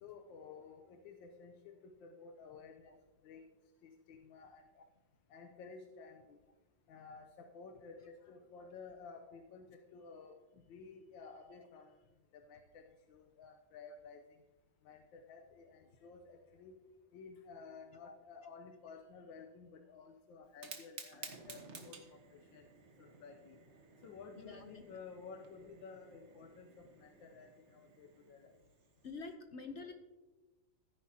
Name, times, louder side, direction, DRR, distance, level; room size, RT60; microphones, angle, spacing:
voice 1, 0.0-2.9 3.2-3.4 3.8-4.8 5.3-6.4 6.9-10.4 10.7-12.0 12.3-14.2 14.8-16.8 17.1-22.6 23.0-23.6 24.0-26.7 26.9-28.6, left 5 dB, 75° left, 3 dB, 1.5 m, -54 dB
Fire, 20.5-29.3, right 4 dB, 40° right, 1.3 m, -55 dB
voice 2, 24.4-25.0 29.0-29.9, left 4 dB, 60° left, 6 dB, 0.7 m, -48 dB
15.0 x 9.6 x 2.8 m, 1.1 s
omnidirectional pair, 2.1 m